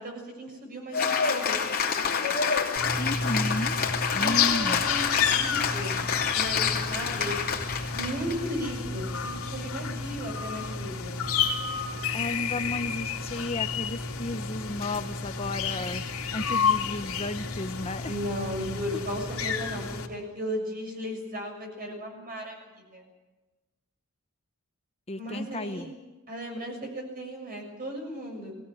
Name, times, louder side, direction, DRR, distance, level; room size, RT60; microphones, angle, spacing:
voice 1, 0.0-2.5 4.1-5.9 6.3-7.4 7.9-11.2 18.1-23.1 25.2-25.9 26.3-28.5, equal, 45° right, 2 dB, 6.8 m, -36 dB
Cheering / Applause, 0.9-8.5, left 6 dB, 45° left, 3.0 m, -28 dB
sound 1, 2.8-20.1, left 6 dB, 80° left, 2.8 m, -30 dB
voice 2, 3.0-3.7 4.1-4.8 12.1-18.1 25.1-25.9, left 2 dB, 30° left, 9 dB, 0.8 m, -33 dB
21.0 x 17.0 x 9.9 m, 1.2 s
head